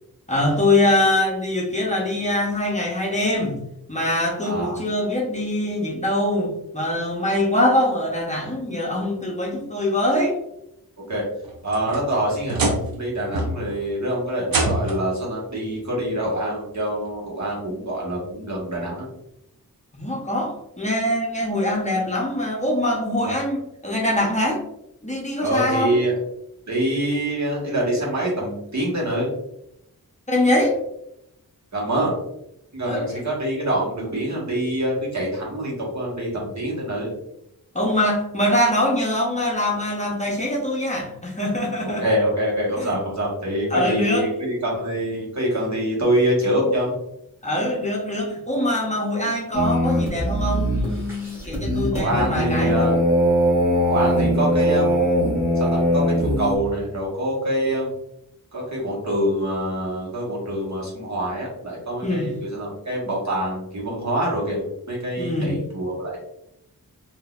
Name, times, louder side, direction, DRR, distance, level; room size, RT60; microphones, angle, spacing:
voice 1, 0.3-3.6 3.9-10.4 19.9-24.6 25.0-25.9 30.3-30.8 32.9-33.2 37.7-42.0 42.8-43.0 43.7-44.2 47.4-52.9 62.0-62.3 65.2-65.6, left 1 dB, 20° left, -3 dB, 0.7 m, -23 dB
voice 2, 4.4-4.8 11.1-11.2 11.6-19.1 23.2-23.3 25.4-26.1 26.7-29.3 31.7-32.2 32.7-37.1 41.8-47.0 51.9-53.0 53.8-55.0 55.5-57.9 58.5-66.2, right 1 dB, 50° right, -5 dB, 1.5 m, -25 dB
sound 1, 11.4-13.0 13.3-13.8 14.5-15.2 16.3-16.4 17.1-17.2 18.7-18.8, right 2 dB, 70° right, 0.7 m, -25 dB
sound 2, 49.5-56.6, equal, 5° right, 1.4 m, -21 dB
3.8 x 2.7 x 2.4 m, 0.80 s
wide cardioid pair, 85°, 36 cm